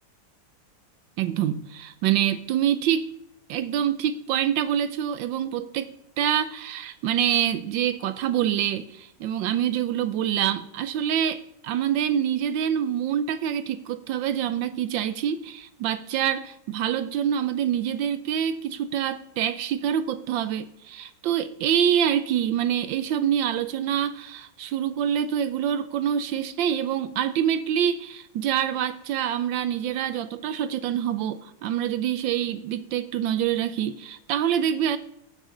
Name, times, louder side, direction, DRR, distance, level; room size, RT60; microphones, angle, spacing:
voice 1, 1.2-3.1 3.5-5.9 6.2-35.0, right 9 dB, 80° right, 1.4 m, -26 dB
15.0 x 9.2 x 3.8 m
omnidirectional pair, 2.1 m